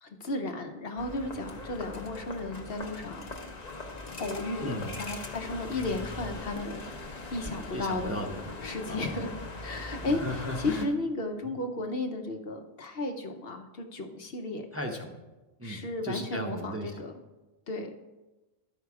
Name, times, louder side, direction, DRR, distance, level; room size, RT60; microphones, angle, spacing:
voice 1, 0.0-3.4 4.2-8.3 8.6-9.3 9.6-10.2 10.6-14.7 15.6-17.1 17.7-18.0, left 2 dB, 65° left, 5 dB, 1.1 m, -34 dB
sound 1, 1.0-10.8, left 3 dB, 40° left, 0.9 m, -40 dB
voice 2, 4.6-5.0 7.7-8.5 8.9-9.3 10.0-10.9 11.4-11.6 14.7-15.2 15.6-17.1, equal, 15° right, 1 dB, 0.8 m, -36 dB
12.5 x 5.6 x 4.7 m, 1.1 s
omnidirectional pair, 1.1 m